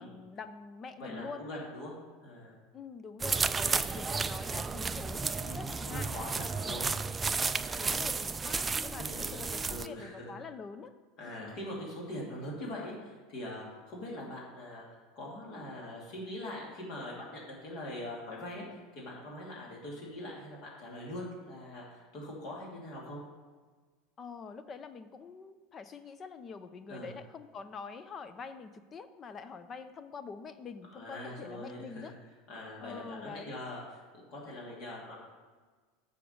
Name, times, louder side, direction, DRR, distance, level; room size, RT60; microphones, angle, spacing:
voice 1, 0.0-1.4 2.7-6.1 6.6-6.9 7.8-11.5 24.2-32.1 32.8-33.6, left 5 dB, 35° left, 11 dB, 0.6 m, -45 dB
voice 2, 1.0-2.6 5.4-6.9 7.7-8.0 8.9-10.3 11.2-18.6 18.9-23.2 26.9-27.1 30.9-32.1 32.5-33.8 34.1-35.1, left 1 dB, 55° left, -3 dB, 2.7 m, -42 dB
sound 1, 3.2-9.9, right 4 dB, 20° right, 0.3 m, -33 dB
6.6 x 5.1 x 6.7 m, 1.4 s
hypercardioid pair, 85°, 0 cm